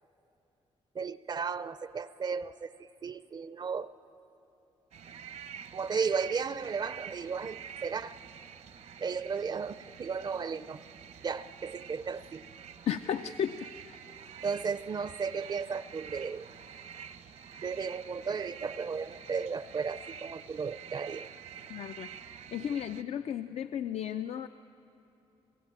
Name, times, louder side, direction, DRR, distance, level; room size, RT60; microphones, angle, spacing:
voice 1, 0.9-3.9 5.7-8.2 9.0-10.8 11.2-12.5 14.4-16.5 17.6-21.3, right 5 dB, 40° right, 14 dB, 0.4 m, -35 dB
sound 1, 4.9-23.0, right 8 dB, 75° right, 0.9 m, -48 dB
voice 2, 12.9-14.2 21.7-22.1 22.5-24.5, left 9 dB, 70° left, 10 dB, 0.4 m, -34 dB
27.5 x 15.5 x 8.6 m, 2.9 s
wide cardioid pair, 135°, 11 cm